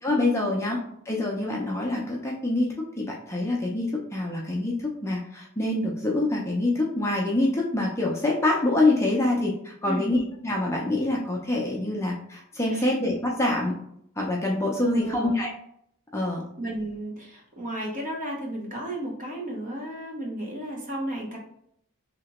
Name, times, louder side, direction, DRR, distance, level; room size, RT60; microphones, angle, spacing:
voice 1, 0.0-13.7 14.2-15.5 16.1-16.5, left 2 dB, 10° left, -2 dB, 0.5 m, -26 dB
voice 2, 9.8-10.1 12.7-12.9 14.8-15.4 16.6-21.4, right 1 dB, 35° right, -1 dB, 0.8 m, -33 dB
3.3 x 2.9 x 2.9 m, 0.71 s
head